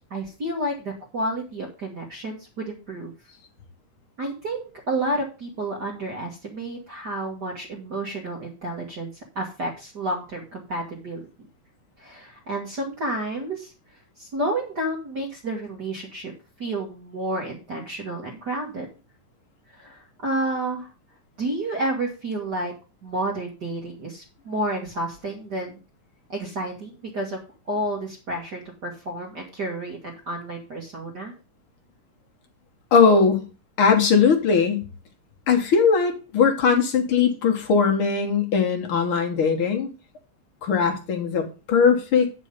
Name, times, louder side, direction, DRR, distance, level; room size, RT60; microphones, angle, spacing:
voice 1, 0.1-3.1 4.2-11.2 12.0-13.7 14.2-16.3 16.6-18.9 19.7-20.9 21.4-22.7 23.0-25.8 26.3-27.4 27.7-31.3, right 1 dB, 40° right, -1 dB, 1.8 m, -30 dB
voice 2, 32.9-33.5 33.8-34.9 35.5-39.9 40.6-42.3, left 5 dB, 50° left, 3 dB, 1.8 m, -20 dB
9.1 x 5.4 x 5.0 m, 0.32 s
omnidirectional pair, 3.7 m